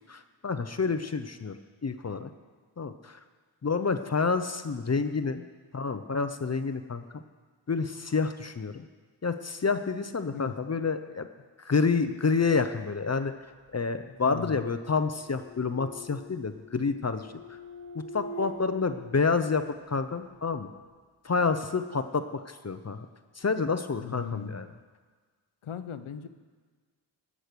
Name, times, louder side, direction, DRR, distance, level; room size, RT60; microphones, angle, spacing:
voice 1, 0.1-1.6 1.8-2.3 2.8-3.2 3.6-5.4 5.7-7.2 7.7-8.9 9.2-11.3 11.6-13.3 13.7-17.6 17.9-20.7 21.2-23.1 23.4-24.7, left 4 dB, 35° left, 9 dB, 0.6 m, -29 dB
sound 1, 13.7-20.0, equal, 15° left, 1.3 m, -45 dB
voice 2, 14.2-14.6 24.0-24.6 25.6-26.3, left 7 dB, 85° left, 11 dB, 0.9 m, -37 dB
18.0 x 6.3 x 6.7 m, 1.5 s
wide cardioid pair, 90°, 48 cm